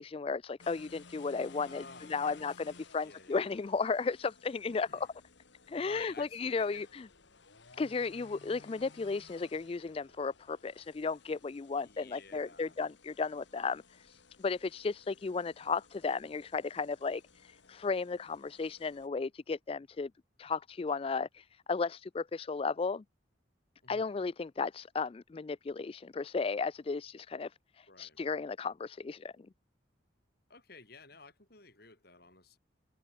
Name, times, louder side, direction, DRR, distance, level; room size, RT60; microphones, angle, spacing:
voice 1, 0.0-1.8 2.1-5.1 5.7-7.1 7.8-20.1 20.4-23.0 23.9-29.3, left 4 dB, 30° left, 0.3 m, -35 dB
sound 1, 0.6-19.1, left 4 dB, 65° left, 1.8 m, -58 dB
voice 2, 1.7-3.6 4.7-5.1 5.7-6.9 11.8-12.8 23.8-24.2 27.9-28.2 30.5-32.6, left 3 dB, 50° left, 7.1 m, -54 dB
open air
head